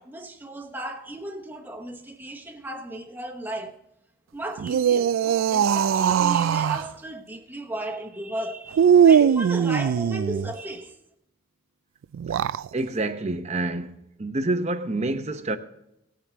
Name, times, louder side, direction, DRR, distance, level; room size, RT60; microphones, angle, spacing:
voice 1, 0.0-3.8 4.3-11.0, right 1 dB, 10° right, 1.1 m, -35 dB
sound 1, 4.6-6.9 8.7-10.5 12.1-12.7, right 8 dB, 80° right, 0.3 m, -20 dB
voice 2, 12.7-13.9 14.2-15.6, right 2 dB, 30° right, 0.8 m, -27 dB
18.0 x 7.4 x 3.5 m
head